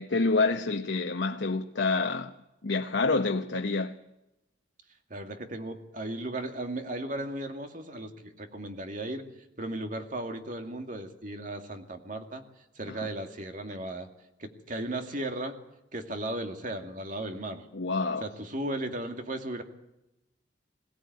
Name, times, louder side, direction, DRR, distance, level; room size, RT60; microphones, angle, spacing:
voice 1, 0.0-2.3 2.6-3.9 12.9-13.0 17.7-18.3, left 3 dB, 75° left, 1.0 m, -27 dB
voice 2, 5.1-9.2 9.6-12.4 12.8-14.1 14.4-15.6 15.9-17.6 18.2-19.6, right 1 dB, 45° right, 2.4 m, -36 dB
22.0 x 17.0 x 9.4 m
head